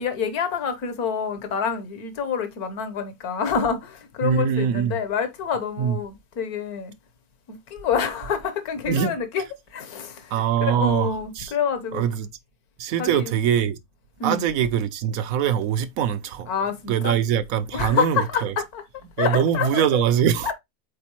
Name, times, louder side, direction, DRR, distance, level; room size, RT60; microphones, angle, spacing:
voice 1, 0.0-6.9 7.5-9.4 9.7-12.0 13.0-13.3 14.2-14.4 16.5-17.2 17.7-18.8 19.2-20.0 20.4-20.5, left 6 dB, 75° left, 1.6 m, -27 dB
voice 2, 4.2-5.0 5.8-6.0 8.9-9.1 10.3-11.5 11.9-12.3 12.8-13.8 14.2-16.5 16.9-18.5 19.2-20.5, right 9 dB, 70° right, 1.1 m, -23 dB
8.4 x 4.0 x 3.0 m
omnidirectional pair, 1.6 m